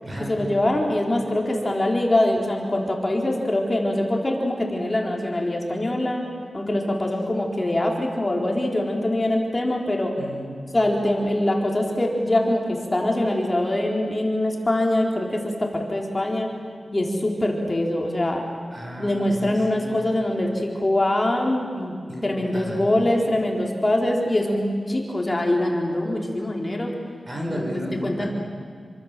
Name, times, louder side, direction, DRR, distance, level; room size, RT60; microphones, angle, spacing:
voice 1, 0.3-6.3 6.5-10.1 10.7-16.5 16.9-18.4 19.0-22.0 22.2-26.9 27.5-27.6 28.0-28.2, left 1 dB, 25° left, 0 dB, 3.9 m, -23 dB
voice 2, 10.2-10.5 18.7-19.9 22.1-22.3 22.5-23.1 27.2-28.3, equal, 30° right, 0 dB, 6.9 m, -33 dB
28.0 x 24.5 x 7.5 m, 2.1 s
wide cardioid pair, 95°, 0 cm